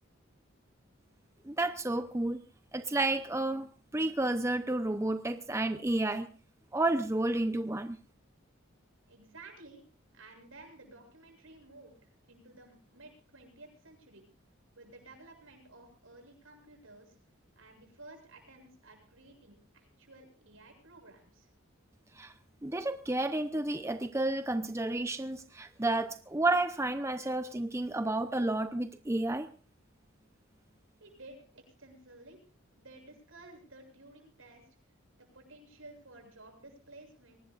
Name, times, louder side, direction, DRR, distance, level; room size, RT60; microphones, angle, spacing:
voice 1, 1.4-2.4 2.7-3.7 3.9-6.3 6.7-8.0 22.1-22.3 22.6-29.5, right 2 dB, 15° right, 9 dB, 0.6 m, -31 dB
voice 2, 9.1-9.8 10.1-14.3 14.8-17.2 17.5-21.5 31.0-32.4 32.7-34.7 35.2-37.4, right 2 dB, 75° right, 3 dB, 7.6 m, -54 dB
23.5 x 19.0 x 2.4 m, 0.37 s
head